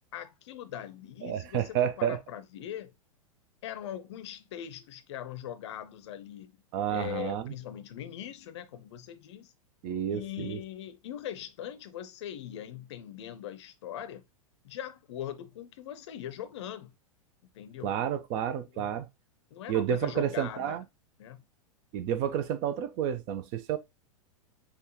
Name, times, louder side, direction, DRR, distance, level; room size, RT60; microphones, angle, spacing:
voice 1, 0.1-2.9 3.6-6.5 6.9-9.5 10.1-14.2 14.6-16.9 17.5-17.9 18.7-18.9 19.5-20.8 21.2-21.4, left 10 dB, 50° left, 0.6 m, -41 dB
voice 2, 1.2-2.2 6.7-7.5 9.8-10.6 17.8-19.1 19.7-20.8 21.9-23.8, right 9 dB, 35° right, 0.5 m, -30 dB
5.6 x 2.3 x 2.8 m
figure-of-eight pair, 95°, 18 cm